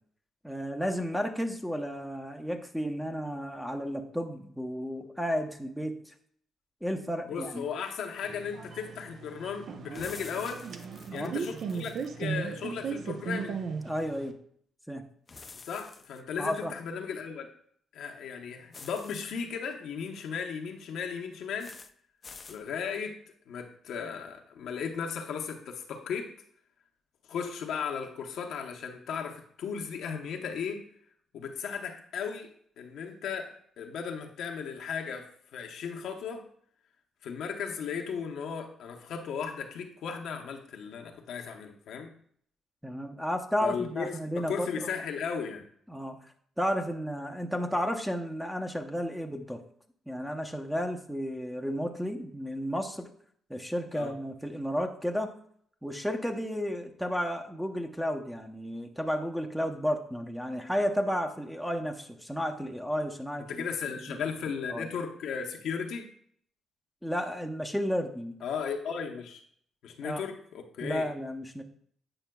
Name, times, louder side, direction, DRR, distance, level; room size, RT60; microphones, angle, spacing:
voice 1, 0.4-6.1 6.8-7.6 11.1-11.4 13.8-14.3 14.9-15.0 16.4-16.7 42.8-44.9 45.9-46.3 46.6-49.6 50.1-53.1 53.5-55.3 55.8-63.5 64.1-64.2 64.7-64.9 67.0-68.4 70.0-70.3 70.8-71.6, equal, ahead, 4 dB, 0.7 m, -32 dB
voice 2, 7.2-10.6 11.1-13.6 15.6-17.5 17.9-21.7 22.5-23.2 23.5-26.3 27.3-30.8 31.3-32.5 32.8-35.3 35.5-36.4 37.2-42.1 43.6-45.6 53.9-54.1 63.5-66.1 68.4-69.4 69.8-71.1, left 6 dB, 75° left, 3 dB, 0.8 m, -36 dB
sound 1, 8.2-14.3, right 5 dB, 65° right, 0.6 m, -37 dB
sound 2, 9.9-12.1 15.3-16.2 18.7-19.3 21.6-21.9 22.2-22.6, left 4 dB, 35° left, 0.4 m, -48 dB
8.9 x 5.6 x 2.3 m, 0.63 s
cardioid pair, 90°, 0 cm